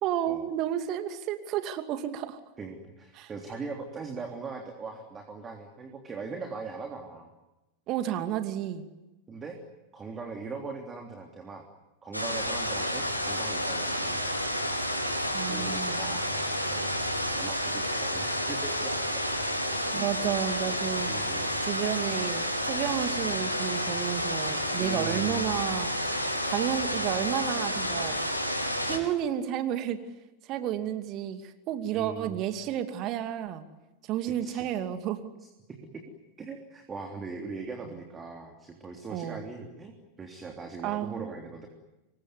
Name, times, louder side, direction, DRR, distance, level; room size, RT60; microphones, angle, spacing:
voice 1, 0.0-2.4 3.1-3.3 7.9-8.9 15.3-16.2 19.9-21.1 21.6-25.9 26.5-28.2 28.9-30.0 30.5-33.6 34.1-35.2 39.1-39.4 40.8-41.3, right 10 dB, 40° right, 8 dB, 2.5 m, -31 dB
voice 2, 2.6-7.3 9.3-9.6 9.9-11.7 12.0-14.2 15.5-19.1 19.9-20.1 20.7-20.8 21.0-21.6 24.1-24.5 24.8-25.6 31.9-32.4 34.4-34.7 35.7-36.0 36.4-39.9 40.2-41.7, right 4 dB, 20° right, 3 dB, 3.4 m, -40 dB
sound 1, 12.1-29.0, equal, 90° left, 4.6 m, -30 dB
26.5 x 23.0 x 9.7 m, 1.0 s
figure-of-eight pair, 90°, 0 cm